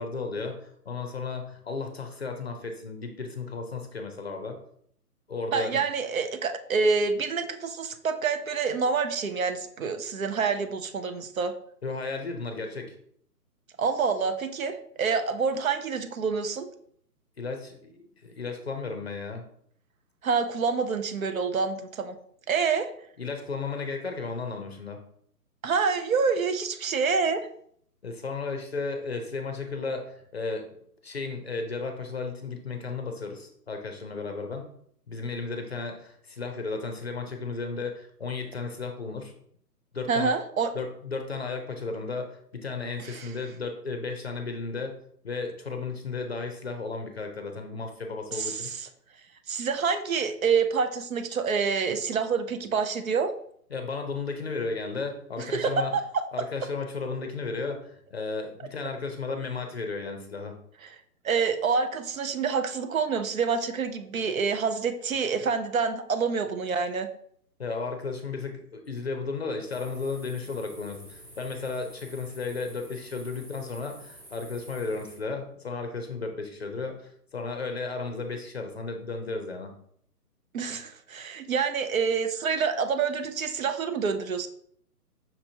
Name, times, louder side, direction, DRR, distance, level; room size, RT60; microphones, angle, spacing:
voice 1, 0.0-4.6 5.3-5.8 11.8-13.0 17.4-19.4 23.2-25.0 28.0-30.7 31.0-34.7 35.1-39.3 39.9-40.3 40.7-45.0 45.2-48.7 53.7-55.9 56.3-60.5 67.6-79.7, left 4 dB, 40° left, 5 dB, 0.5 m, -34 dB
voice 2, 5.5-11.5 13.8-16.7 20.2-22.2 22.5-22.9 25.6-27.5 40.1-40.7 43.0-43.3 48.3-48.9 49.5-53.3 55.4-56.2 60.8-60.9 61.2-67.1 80.5-84.5, right 5 dB, 60° right, 8 dB, 0.6 m, -27 dB
sound 1, 69.7-75.2, right 1 dB, 15° right, 1.2 m, -49 dB
5.7 x 2.9 x 2.7 m, 0.64 s
hypercardioid pair, 160°, 49 cm